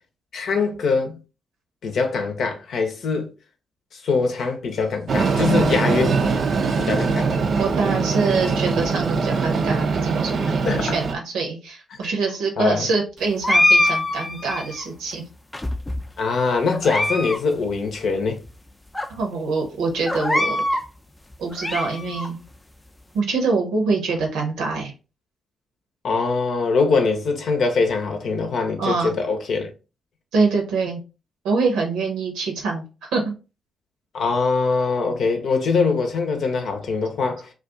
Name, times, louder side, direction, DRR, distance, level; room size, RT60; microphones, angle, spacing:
voice 1, 0.3-1.1 1.8-3.3 3.9-6.2 6.8-7.3 10.7-10.9 11.9-12.1 12.6-12.9 16.2-18.4 26.0-29.7 34.1-37.5, left 4 dB, 65° left, 0.7 m, -23 dB
Train, 5.1-11.1, right 4 dB, 60° right, 0.4 m, -22 dB
voice 2, 7.6-15.2 19.1-20.6 21.4-22.4 23.1-24.9 28.8-29.1 30.3-31.0 31.4-33.3, right 4 dB, 80° right, 0.8 m, -24 dB
sound 1, 13.4-14.9 15.5-16.2 16.7-17.4 17.7-17.8 18.5-18.6 18.9-19.1 20.1-20.9 21.3-22.3, left 2 dB, 20° left, 0.5 m, -22 dB
2.4 x 2.3 x 3.7 m
hypercardioid pair, 40°, 0 cm